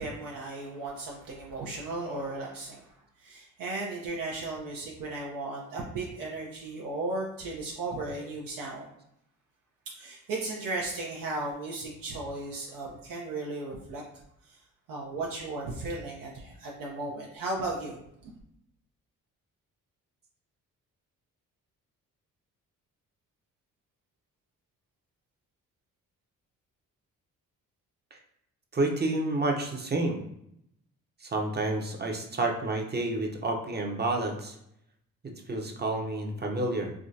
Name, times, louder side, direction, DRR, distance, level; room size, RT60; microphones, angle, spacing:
voice 1, 0.0-2.9 3.2-8.9 10.0-14.0 14.5-14.6 14.9-18.3, right 2 dB, 70° right, -2 dB, 0.7 m, -35 dB
voice 2, 28.7-30.2 31.2-34.6 35.2-36.9, right 2 dB, 30° right, 2 dB, 0.8 m, -29 dB
3.6 x 2.2 x 2.7 m, 0.76 s
supercardioid pair, 55°, 35 cm